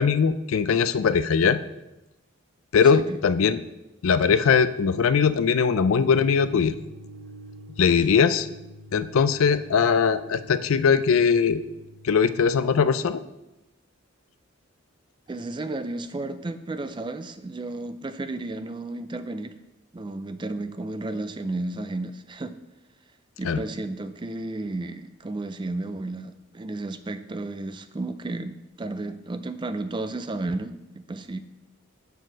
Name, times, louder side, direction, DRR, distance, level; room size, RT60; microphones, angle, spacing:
voice 1, 0.0-1.6 2.7-3.6 4.0-6.7 7.8-8.5 8.9-11.6 12.0-13.2 23.4-23.6, left 6 dB, 75° left, 13 dB, 0.4 m, -20 dB
sound 1, 5.7-12.9, right 1 dB, 85° right, 0.9 m, -46 dB
voice 2, 15.3-19.6 19.9-22.5 23.4-31.4, right 2 dB, 20° right, 11 dB, 0.4 m, -33 dB
7.9 x 4.6 x 6.2 m, 0.95 s
head